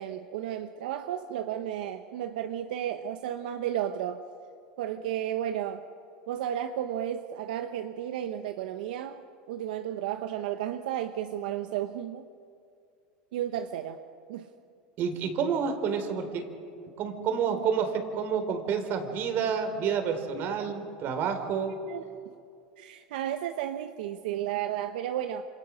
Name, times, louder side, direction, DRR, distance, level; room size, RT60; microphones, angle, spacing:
voice 1, 0.0-4.2 4.8-5.8 6.3-12.3 13.3-14.0 14.3-14.5 21.9-22.0 22.8-25.5, right 11 dB, 80° right, 8 dB, 1.1 m, -33 dB
voice 2, 15.0-16.5 17.0-21.8, right 6 dB, 50° right, 7 dB, 4.1 m, -29 dB
28.0 x 26.5 x 6.4 m, 2.4 s
supercardioid pair, 120°, 5 cm